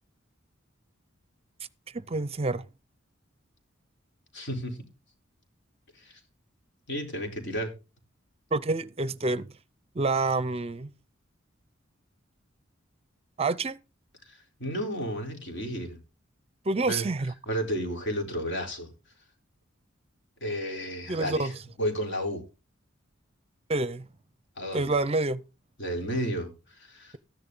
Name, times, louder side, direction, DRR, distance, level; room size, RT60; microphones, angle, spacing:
voice 1, 2.1-2.6 8.5-9.5 9.9-10.9 13.4-13.8 16.7-17.3 21.1-21.5 23.7-24.1 24.7-25.4, right 3 dB, 30° right, 0.6 m, -27 dB
voice 2, 4.3-4.8 5.9-6.2 6.9-7.7 14.2-16.0 16.9-17.1 17.5-18.9 20.4-22.4 24.6-25.0 25.8-27.2, equal, 60° left, 3.9 m, -32 dB
13.5 x 11.0 x 3.8 m
head